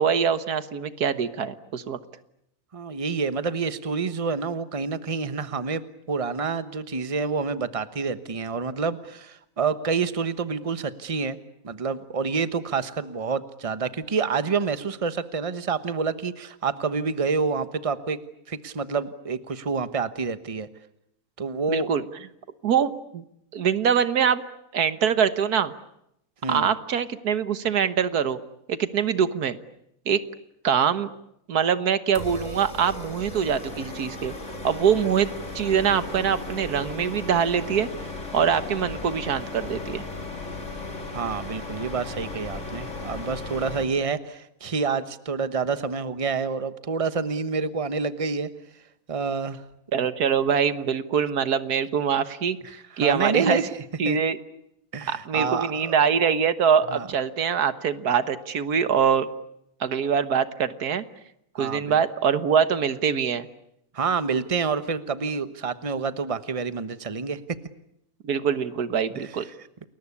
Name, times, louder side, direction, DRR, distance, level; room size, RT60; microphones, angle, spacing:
voice 1, 0.0-2.0 21.7-22.0 22.6-23.2 23.5-24.4 24.7-25.7 26.5-28.4 28.7-29.6 30.1-30.2 30.6-31.1 31.5-34.3 34.6-35.3 35.6-37.9 38.3-40.1 49.9-53.6 54.0-54.4 55.1-59.3 59.8-61.0 61.6-63.5 68.2-69.5, right 7 dB, 90° right, 12 dB, 1.8 m, -23 dB
voice 2, 2.7-11.4 11.6-18.2 18.5-20.7 21.4-21.9 26.4-26.7 41.1-48.5 49.1-49.6 53.0-53.7 54.0-54.2 54.9-56.0 56.9-57.1 61.6-62.0 63.9-67.4 69.1-69.3, right 5 dB, 25° right, 12 dB, 1.1 m, -28 dB
sound 1, 32.1-43.8, left 2 dB, 50° left, 4.1 m, -36 dB
29.5 x 21.5 x 8.5 m, 0.78 s
omnidirectional pair, 1.6 m